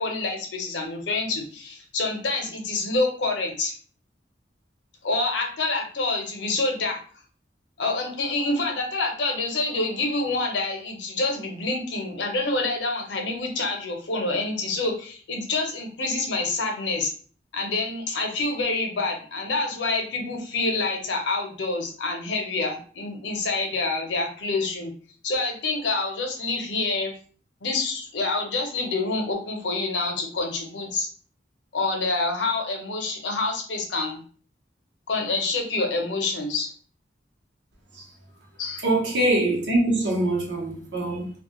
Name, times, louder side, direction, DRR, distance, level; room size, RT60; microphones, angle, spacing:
voice 1, 0.0-3.7 5.0-7.0 7.8-17.1 17.5-24.9 25.2-27.1 27.6-31.1 31.7-34.2 35.1-36.7 38.6-38.8, left 3 dB, 80° left, 0.7 m, -27 dB
voice 2, 38.8-41.3, right 1 dB, 75° right, 0.8 m, -23 dB
2.3 x 2.1 x 2.9 m
head